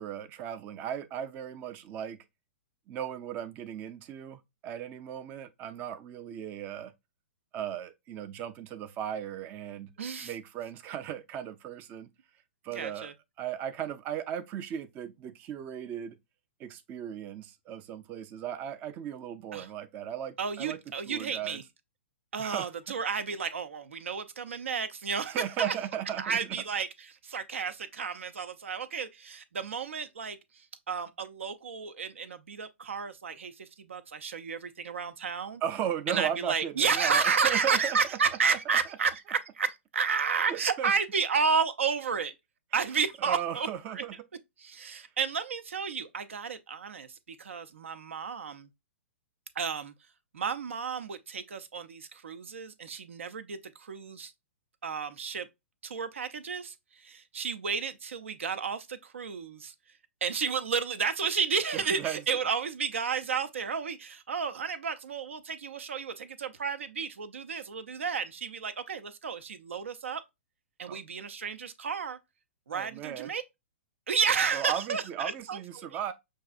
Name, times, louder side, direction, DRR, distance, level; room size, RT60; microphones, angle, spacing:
voice 1, 0.0-2.2 2.9-6.9 7.5-9.9 10.2-12.1 12.6-16.1 16.6-20.8 21.1-21.6 22.4-22.7 25.2-26.6 35.6-38.2 38.5-38.6 40.5-40.9 42.8-42.9 43.2-44.1 44.8-45.1 61.7-62.2 70.9-71.0 72.7-73.3 74.5-76.1, right 9 dB, 25° right, 0.5 m, -36 dB
voice 2, 10.0-10.3 12.7-13.1 19.5-19.6 20.4-21.6 22.3-25.7 26.2-30.4 30.9-33.5 33.8-35.6 36.1-42.3 42.7-43.7 43.9-44.0 44.6-47.1 47.4-48.7 49.6-49.9 50.3-54.3 54.8-55.5 55.8-56.7 57.0-59.7 60.2-70.2 70.8-72.2 72.7-73.4 74.1-75.9, right 6 dB, 70° right, 0.6 m, -31 dB
6.3 x 2.6 x 2.4 m
hypercardioid pair, 120°, 7 cm